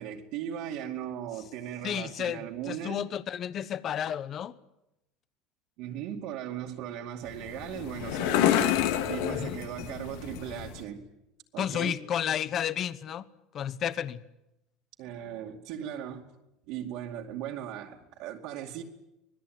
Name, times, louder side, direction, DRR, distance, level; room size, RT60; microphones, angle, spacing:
voice 1, 0.0-3.1 5.8-11.1 11.5-12.0 15.0-16.3 16.7-18.8, right 10 dB, 55° right, 2.4 m, -38 dB
voice 2, 1.8-4.5 9.3-9.6 11.6-13.2 13.5-14.2, left 9 dB, 30° left, 1.1 m, -32 dB
sound 1, 7.2-10.8, left 11 dB, 70° left, 2.4 m, -29 dB
25.5 x 19.5 x 9.4 m
cardioid pair, 165°, 0 cm